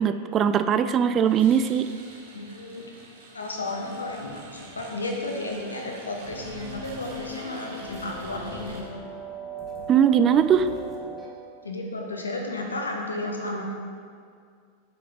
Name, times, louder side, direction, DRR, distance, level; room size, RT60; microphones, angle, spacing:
voice 1, 0.0-1.9 9.9-10.7, right 8 dB, 30° right, 11 dB, 0.3 m, -20 dB
sound 1, 1.3-8.8, right 3 dB, 60° right, 1.3 m, -47 dB
voice 2, 2.3-3.0 3.3-9.0 11.6-13.6, left 2 dB, 75° left, 0 dB, 1.2 m, -33 dB
sound 2, 6.2-11.3, right 2 dB, 5° right, 1.6 m, -38 dB
8.3 x 6.7 x 3.7 m, 2.2 s
figure-of-eight pair, 90°, 0 cm